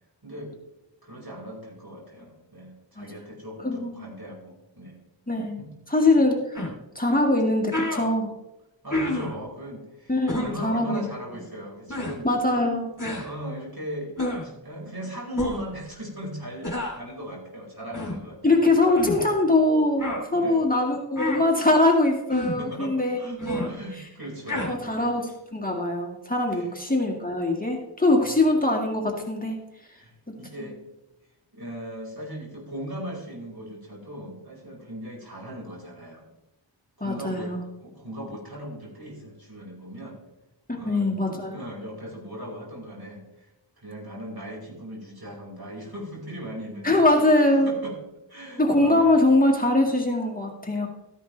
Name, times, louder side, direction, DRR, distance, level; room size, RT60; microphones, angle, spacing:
voice 1, 0.2-0.5 1.0-5.0 5.6-5.7 8.8-12.3 13.2-14.2 14.4-18.4 18.9-19.1 20.3-20.6 22.6-25.1 26.5-26.7 28.2-28.3 30.0-30.8 31.5-36.3 37.0-37.5 37.8-40.2 40.7-41.1 41.4-43.5 43.8-47.1 47.6-48.0 48.3-49.1, equal, 50° right, -3 dB, 5.3 m, -38 dB
voice 2, 3.6-4.1 5.3-6.7 7.0-8.3 10.1-11.1 12.2-12.9 18.4-23.2 23.5-23.7 24.6-29.6 30.6-30.7 37.0-37.6 40.7-41.6 46.8-47.7 48.6-50.9, left 2 dB, 20° left, -1 dB, 1.9 m, -22 dB
sound 1, 6.6-6.7 7.4-7.5 7.7-8.1 8.9-9.4 10.3-10.5 11.9-12.2 13.0-13.3 14.2-14.5 15.3-15.7 16.6-17.0 17.9-18.2 19.0-19.2 20.0-20.2 21.2-21.4 22.3-22.6 23.4-23.7 24.5-24.7, left 1 dB, 40° left, 3.1 m, -29 dB
14.5 x 10.5 x 3.3 m, 0.93 s
wide cardioid pair, 40°, 46 cm